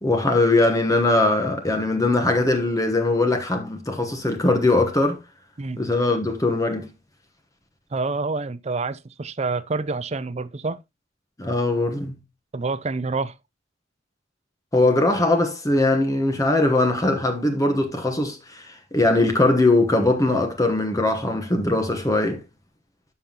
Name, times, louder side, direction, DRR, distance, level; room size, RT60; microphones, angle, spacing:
voice 1, 0.0-5.2 5.8-6.9 11.4-12.1 14.7-22.4, left 2 dB, 15° left, 1.1 m, -21 dB
voice 2, 7.9-10.8 12.5-13.4, right 3 dB, 35° right, 0.5 m, -27 dB
12.5 x 5.6 x 2.9 m
head